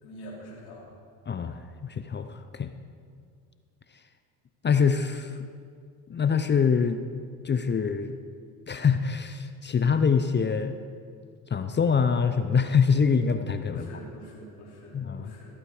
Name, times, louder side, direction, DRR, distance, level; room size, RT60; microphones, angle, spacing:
voice 1, 0.0-0.9 13.7-15.5, equal, 65° left, -4 dB, 3.3 m, -45 dB
voice 2, 1.3-2.7 4.6-5.4 6.1-7.0 7.4-8.2 8.7-10.8 11.5-13.9 14.9-15.3, left 6 dB, 25° left, 9 dB, 0.6 m, -25 dB
15.0 x 8.7 x 4.9 m, 2.2 s
hypercardioid pair, 70°, 41 cm